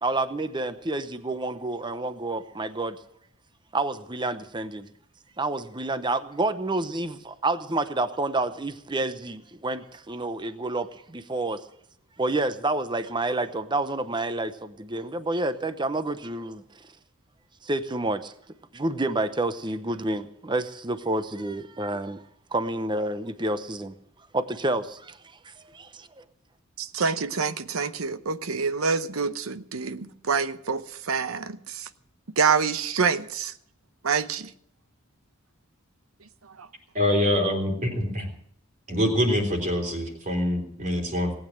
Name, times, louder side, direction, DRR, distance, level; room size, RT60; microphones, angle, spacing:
voice 1, 0.0-3.0 3.7-4.9 5.4-11.6 12.2-16.8 17.6-18.3 18.7-22.2 22.5-23.9 24.3-25.2 25.4-26.2, right 2 dB, 20° right, 0.8 m, -29 dB
voice 2, 26.8-31.9 32.4-33.5 34.0-34.5 36.4-36.7, right 5 dB, 90° right, 0.9 m, -27 dB
voice 3, 36.9-38.3 38.9-41.3, left 1 dB, 40° right, 3.6 m, -25 dB
19.0 x 8.9 x 7.7 m
head